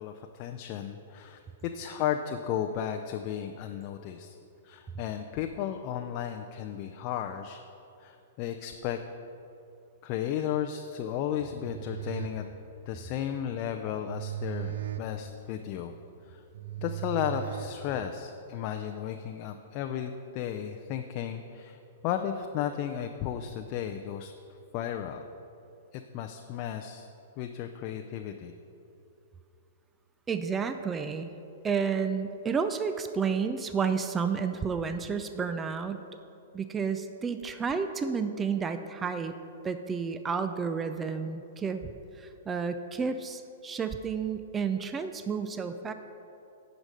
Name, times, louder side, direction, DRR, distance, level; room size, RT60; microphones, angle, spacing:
voice 1, 0.0-4.3 4.6-7.6 8.0-9.0 10.0-12.4 12.9-15.9 16.3-16.4 16.8-24.3 24.7-25.3 25.9-27.1 27.4-28.5, left 9 dB, 40° left, 5 dB, 0.5 m, -34 dB
sound 1, 11.3-18.3, right 12 dB, 70° right, 0.7 m, -39 dB
voice 2, 30.3-31.3 31.6-36.0 36.5-39.3 39.6-45.9, right 6 dB, 15° right, 9 dB, 0.4 m, -31 dB
9.6 x 5.2 x 6.4 m, 2.8 s
hypercardioid pair, 125°, 0 cm